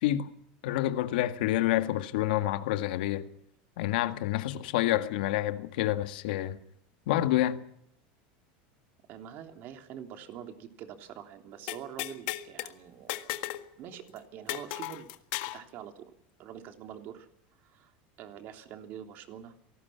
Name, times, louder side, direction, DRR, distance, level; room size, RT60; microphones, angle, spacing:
voice 1, 0.6-3.3 3.8-6.6 7.1-7.6, left 14 dB, 80° left, 1.9 m, -28 dB
voice 2, 9.1-13.3 13.8-15.1 15.5-16.0 16.4-17.3 17.6-17.9 18.2-19.5, right 9 dB, 45° right, 3.3 m, -45 dB
sound 1, 11.7-12.7 13.1-13.7 13.9-14.0 14.5-15.6, left 16 dB, 60° left, 1.7 m, -35 dB
28.0 x 19.0 x 5.9 m
supercardioid pair, 160°, 5 cm